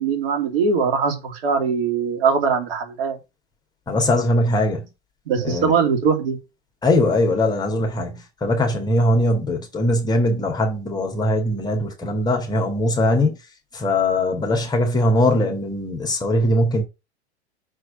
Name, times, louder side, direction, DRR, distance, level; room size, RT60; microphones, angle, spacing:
voice 1, 0.0-3.2 5.3-6.4, right 5 dB, 55° right, 2.7 m, -21 dB
voice 2, 3.9-4.8 5.4-5.7 6.8-13.4 13.7-16.8, left 1 dB, 10° left, 2.1 m, -20 dB
6.3 x 4.8 x 6.3 m
figure-of-eight pair, 95°, 33 cm